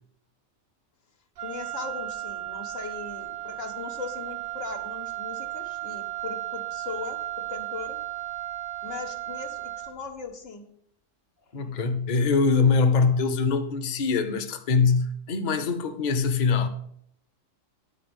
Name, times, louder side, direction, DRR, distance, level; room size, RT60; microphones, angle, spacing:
voice 1, 1.4-8.0 8.8-10.7 11.5-11.7, left 5 dB, 75° left, 1.6 m, -39 dB
Wind instrument woodwind instrument, 1.4-10.1, right 16 dB, 55° right, 0.7 m, -35 dB
voice 2, 11.5-16.7, left 4 dB, 40° left, 0.8 m, -23 dB
10.0 x 4.4 x 7.8 m
omnidirectional pair, 1.3 m